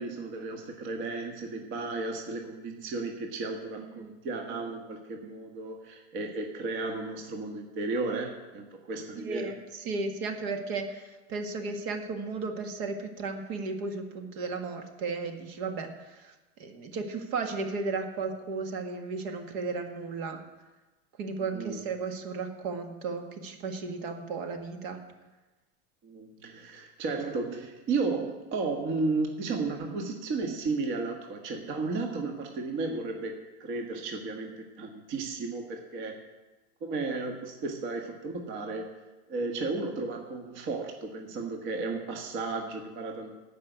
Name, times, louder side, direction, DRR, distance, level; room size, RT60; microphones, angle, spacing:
voice 1, 0.0-9.5 21.5-21.8 26.0-36.2 36.8-38.9 39.3-43.3, right 3 dB, 35° right, 2 dB, 1.5 m, -34 dB
voice 2, 9.2-16.3 16.6-20.4 21.2-25.0, right 4 dB, 55° right, 5 dB, 1.7 m, -34 dB
14.0 x 5.4 x 9.2 m, 1.1 s
supercardioid pair, 150°, 32 cm